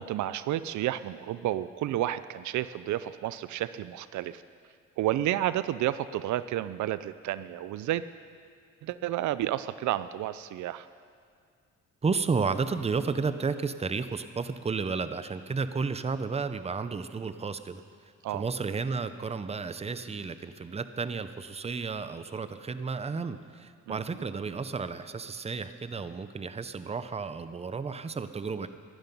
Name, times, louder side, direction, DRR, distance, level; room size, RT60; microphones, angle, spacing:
voice 1, 0.0-4.4 5.0-8.0 8.8-10.9 18.2-18.5 23.9-24.0, right 13 dB, 75° right, 15 dB, 0.5 m, -31 dB
voice 2, 12.0-17.8 18.3-28.7, right 4 dB, 20° right, 12 dB, 0.7 m, -32 dB
16.5 x 11.5 x 5.4 m, 2.1 s
cardioid pair, 90°, 30 cm